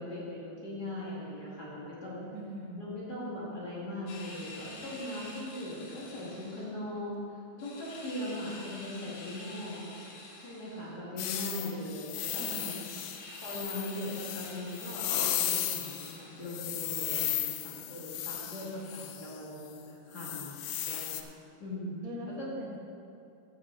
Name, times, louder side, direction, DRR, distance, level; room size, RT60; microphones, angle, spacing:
voice 1, 0.0-2.3 2.8-7.2 7.6-9.9 10.4-12.8 13.4-21.2 21.6-22.0 22.4-22.5, left 1 dB, 35° left, -7 dB, 2.1 m, -40 dB
voice 2, 2.3-2.8 12.2-12.9 22.0-22.8, equal, 65° right, -1 dB, 2.6 m, -42 dB
sound 1, 4.1-6.7 7.6-11.0 12.1-16.8, left 2 dB, 65° left, 2.5 m, -48 dB
sound 2, 11.2-16.2 16.5-19.4 20.2-21.2, left 12 dB, 85° left, 1.8 m, -35 dB
15.0 x 6.9 x 4.5 m, 2.7 s
omnidirectional pair, 4.3 m